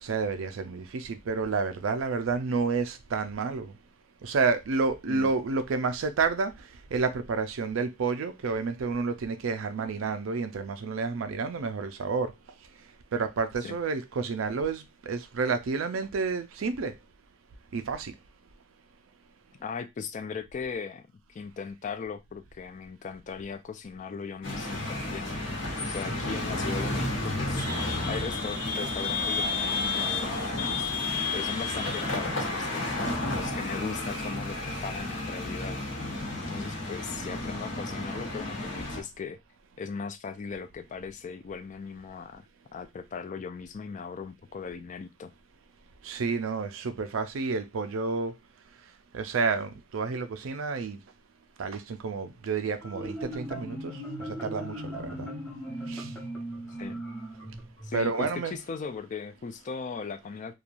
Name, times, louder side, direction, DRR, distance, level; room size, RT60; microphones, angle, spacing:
voice 1, 0.0-3.7 4.2-12.3 13.1-16.9 17.7-18.1 46.0-48.3 49.1-51.0 51.6-55.3 55.9-56.1 57.9-58.6, right 4 dB, 90° right, 0.4 m, -30 dB
voice 2, 19.6-25.4 25.9-27.7 28.1-33.0 33.3-35.8 36.3-39.4 39.8-42.4 42.7-45.3 56.8-57.0 57.8-60.5, left 5 dB, 40° left, 0.4 m, -38 dB
sound 1, 24.4-39.0, left 2 dB, 70° left, 1.1 m, -31 dB
Marimba xylophone, 52.8-58.4, right 1 dB, 10° left, 1.0 m, -38 dB
3.0 x 2.3 x 2.5 m
head